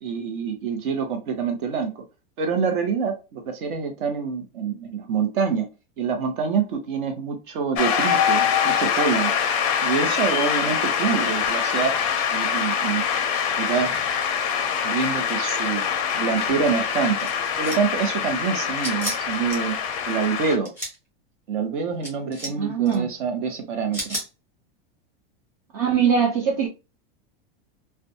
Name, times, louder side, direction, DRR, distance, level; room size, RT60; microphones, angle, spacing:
voice 1, 0.0-2.0 2.4-5.7 6.0-9.3 9.8-11.9 12.3-13.0 13.6-14.1 14.8-15.9 16.1-17.3 17.6-20.7 21.5-24.2, right 6 dB, 60° right, 0.9 m, -26 dB
Shout / Cheering / Applause, 7.8-20.6, left 7 dB, 35° left, 0.4 m, -24 dB
sound 1, 17.2-17.9 18.8-19.6 20.5-20.9 22.0-22.5 22.9-23.0 23.9-24.3, equal, 10° right, 0.8 m, -32 dB
voice 2, 22.5-23.1 25.7-26.7, right 7 dB, 40° right, 0.4 m, -22 dB
2.5 x 2.2 x 2.6 m
supercardioid pair, 170°, 29 cm